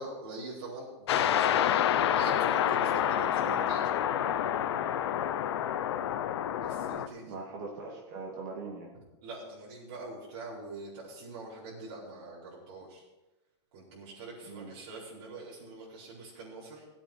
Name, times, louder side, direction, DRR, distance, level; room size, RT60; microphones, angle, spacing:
voice 1, 0.0-3.9 6.6-7.3 9.2-13.0 13.7-16.8, right 2 dB, 60° right, -9 dB, 4.7 m, -44 dB
sound 1, 1.1-7.1, left 10 dB, 70° left, 0.8 m, -28 dB
voice 2, 7.3-8.9 14.5-14.8, right 4 dB, 45° right, -2 dB, 2.4 m, -41 dB
16.5 x 8.7 x 4.3 m, 1.1 s
supercardioid pair, 170°, 14 cm